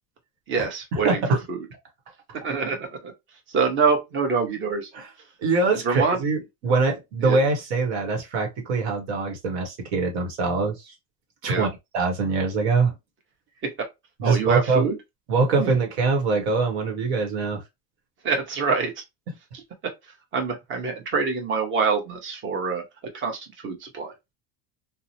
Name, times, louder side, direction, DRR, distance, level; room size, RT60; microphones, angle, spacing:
voice 1, 0.5-1.6 2.4-3.1 3.5-4.9 5.7-6.2 7.2-7.4 11.5-11.7 13.6-13.7 14.2-15.0 15.6-15.7 18.2-18.9 19.5-19.6 20.3-22.8 23.1-24.1, right 5 dB, 35° right, 0.9 m, -25 dB
voice 2, 5.4-10.9 11.4-12.9 14.2-14.9 15.3-17.6, right 4 dB, 90° right, 1.0 m, -23 dB
2.8 x 2.0 x 2.7 m
supercardioid pair, 110°, 32 cm